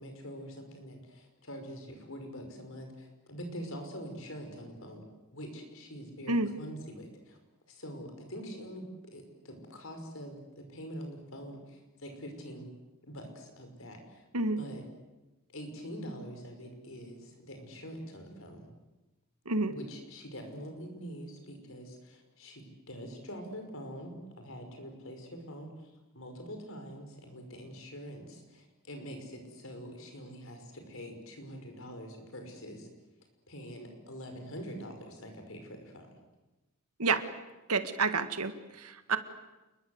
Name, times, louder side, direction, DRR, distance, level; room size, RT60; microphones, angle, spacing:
voice 1, 0.0-5.0 5.3-7.4 7.7-12.7 13.0-14.2 14.6-14.8 15.5-18.7 19.6-32.9 33.5-36.1, equal, 65° left, 4 dB, 5.6 m, -44 dB
voice 2, 37.7-38.5 38.8-39.2, right 3 dB, 90° right, 10 dB, 1.9 m, -29 dB
28.5 x 21.5 x 8.1 m, 1.1 s
head